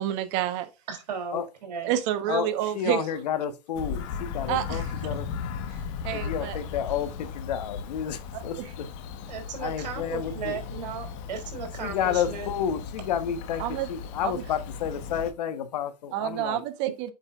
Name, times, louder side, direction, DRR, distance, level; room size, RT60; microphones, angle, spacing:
voice 1, 0.0-0.7 1.8-3.0 4.5-4.9 6.0-6.6 8.3-8.7 13.6-13.9 14.2-14.4 16.1-17.1, right 12 dB, 45° right, 1.2 m, -29 dB
voice 2, 0.9-1.9 9.3-12.5, right 5 dB, 80° right, 3.2 m, -36 dB
voice 3, 2.7-5.3 6.1-8.9 9.6-10.6 11.8-13.6 13.9-16.6, left 8 dB, 75° left, 1.3 m, -30 dB
Bird vocalization bird call bird song, 3.7-15.3, left 6 dB, 50° left, 1.4 m, -36 dB
8.0 x 5.4 x 2.5 m
supercardioid pair, 140°, 21 cm